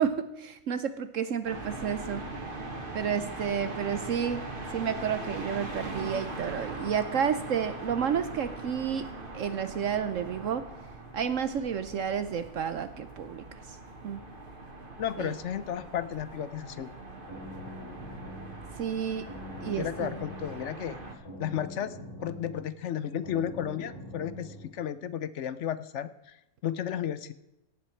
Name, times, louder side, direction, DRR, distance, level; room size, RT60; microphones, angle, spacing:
voice 1, 0.0-2.2 2.9-4.4 4.7-10.7 11.1-13.8 14.0-14.2 15.2-15.3 18.8-19.3 19.6-20.2, right 8 dB, 65° right, 11 dB, 1.0 m, -31 dB
sound 1, 1.5-21.1, right 2 dB, 35° right, 1.9 m, -41 dB
voice 2, 15.0-16.9 19.7-21.0 21.4-26.4 26.6-27.3, left 9 dB, 65° left, 15 dB, 0.8 m, -33 dB
sound 2, 17.0-24.7, left 1 dB, 35° left, 6.0 m, -44 dB
17.5 x 7.8 x 4.4 m, 0.90 s
omnidirectional pair, 1.6 m